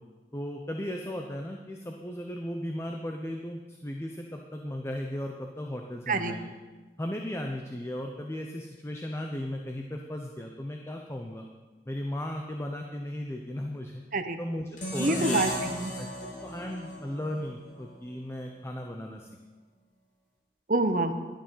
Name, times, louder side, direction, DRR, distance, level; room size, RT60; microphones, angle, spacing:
voice 1, 0.3-6.5 7.0-11.5 11.9-14.0 14.4-15.5 16.0-19.3, left 1 dB, 15° left, 2 dB, 0.7 m, -36 dB
sound 1, 14.8-18.0, left 1 dB, 45° left, 2.4 m, -35 dB
voice 2, 15.0-15.9 20.7-21.1, right 2 dB, 50° right, 8 dB, 0.9 m, -27 dB
11.5 x 10.0 x 5.6 m, 1.3 s
head